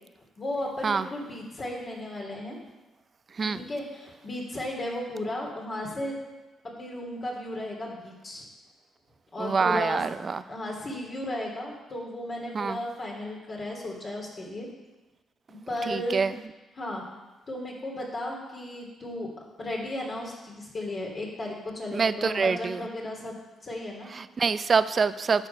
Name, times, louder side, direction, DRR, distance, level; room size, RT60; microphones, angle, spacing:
voice 1, 0.4-2.6 3.4-6.2 6.8-8.5 9.3-10.1 10.5-14.7 15.7-16.2 16.7-17.0 17.5-19.3 19.6-23.4 23.6-24.1, left 1 dB, 40° left, -2 dB, 2.6 m, -34 dB
voice 2, 9.4-10.4 12.5-12.8 15.9-16.3 21.9-22.8 24.1-25.5, right 5 dB, 40° right, 14 dB, 0.5 m, -25 dB
11.5 x 6.3 x 5.4 m, 1.1 s
cardioid pair, 90°, 0 cm